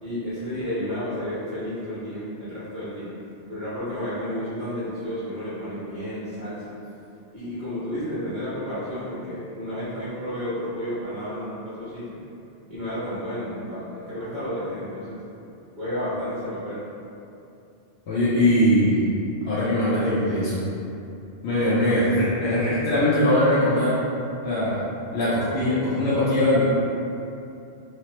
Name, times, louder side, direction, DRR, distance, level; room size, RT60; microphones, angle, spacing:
voice 1, 0.0-3.1 3.5-6.7 7.3-12.2 12.7-15.2 15.8-16.8, equal, 45° right, -13 dB, 0.9 m, -31 dB
voice 2, 18.1-19.1 19.4-20.6 21.4-24.0 24.4-24.8 25.1-26.6, left 1 dB, 70° left, -11 dB, 0.9 m, -21 dB
3.1 x 2.0 x 2.9 m, 2.7 s
omnidirectional pair, 1.2 m